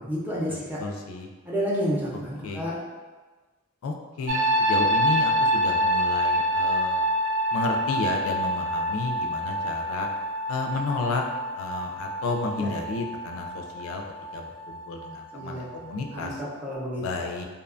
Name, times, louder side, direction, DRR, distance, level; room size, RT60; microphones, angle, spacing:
voice 1, 0.0-0.8 1.5-2.7 12.6-12.7 15.3-15.6 16.1-17.0, equal, 10° right, -6 dB, 0.5 m, -30 dB
voice 2, 0.8-1.3 2.4-2.6 3.8-7.0 7.5-10.1 10.5-11.2 11.6-14.0 14.3-16.4 17.0-17.4, left 3 dB, 80° left, 3 dB, 0.3 m, -32 dB
sound 1, 4.3-16.0 16.3-16.7, equal, 65° right, 0.4 m, -27 dB
2.6 x 2.2 x 2.5 m, 1.3 s
head